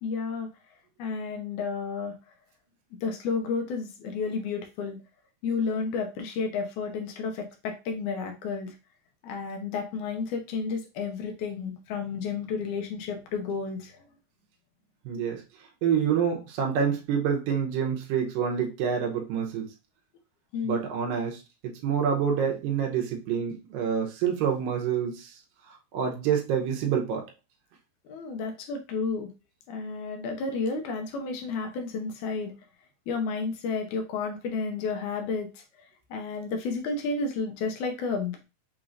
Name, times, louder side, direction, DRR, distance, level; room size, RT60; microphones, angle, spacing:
voice 1, 0.0-0.5 1.0-2.2 3.0-5.0 5.4-8.7 9.2-14.0 20.5-20.8 28.1-29.3 29.7-32.5 33.1-35.6 36.1-38.4, left 4 dB, 80° left, 4 dB, 1.7 m, -31 dB
voice 2, 15.1-15.4 15.8-19.7 20.6-25.3 25.9-27.2, right 7 dB, 75° right, 1 dB, 2.4 m, -27 dB
6.4 x 3.0 x 2.5 m, 0.28 s
omnidirectional pair, 4.5 m